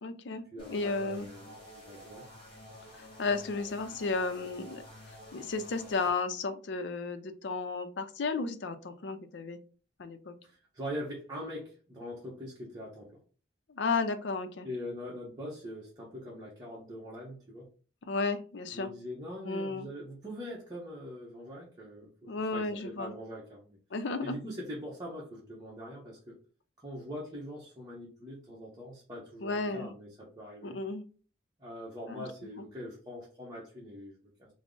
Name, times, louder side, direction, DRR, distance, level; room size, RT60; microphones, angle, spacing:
voice 1, 0.0-1.3 3.0-4.8 5.3-9.6 10.0-10.3 13.7-14.7 18.1-18.9 19.4-19.9 22.3-23.1 23.9-24.4 29.4-29.9 30.6-31.0 32.1-32.3 32.6-32.7, left 3 dB, 70° left, 9 dB, 0.5 m, -33 dB
voice 2, 0.5-2.3 10.4-13.1 14.6-17.7 18.7-23.8 24.2-26.3 26.8-30.8 31.6-34.5, equal, 20° right, -5 dB, 0.8 m, -43 dB
sound 1, 0.6-6.1, left 1 dB, 30° left, 1.3 m, -50 dB
3.5 x 2.0 x 3.7 m, 0.38 s
head